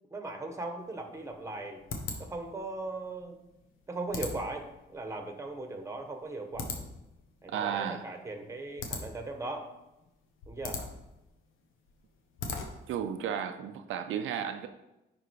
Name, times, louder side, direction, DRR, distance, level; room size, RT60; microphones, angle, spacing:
voice 1, 0.1-1.8 2.2-3.4 3.9-6.7 7.4-9.7 10.5-10.8, right 2 dB, 15° right, 5 dB, 1.3 m, -38 dB
sound 1, 0.8-13.0, left 4 dB, 85° left, 1.3 m, -42 dB
voice 2, 7.5-8.0 12.9-14.7, right 8 dB, 80° right, 6 dB, 0.7 m, -33 dB
10.0 x 3.9 x 4.8 m, 0.95 s
cardioid pair, 90°, 20 cm